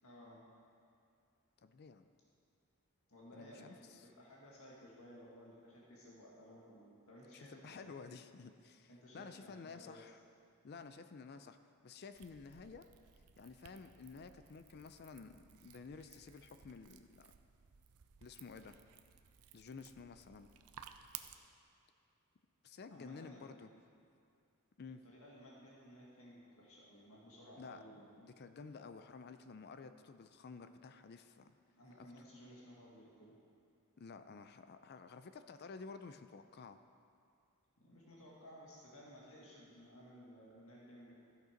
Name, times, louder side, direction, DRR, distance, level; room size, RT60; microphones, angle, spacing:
voice 1, 0.0-0.4 3.1-8.1 8.9-10.1 22.9-23.6 25.0-28.2 31.8-33.4 37.8-41.1, equal, 65° left, -5 dB, 1.9 m, -57 dB
voice 2, 1.6-2.1 3.3-4.1 7.3-10.2 10.6-11.6 11.8-12.9 13.4-17.3 18.2-18.8 19.5-20.5 22.6-23.7 24.8-25.0 27.6-31.5 32.0-32.1 34.0-36.8, left 4 dB, 45° left, 10 dB, 0.4 m, -52 dB
sound 1, 12.1-21.3, right 9 dB, 80° right, 0.5 m, -57 dB
14.5 x 6.6 x 5.1 m, 2.5 s
head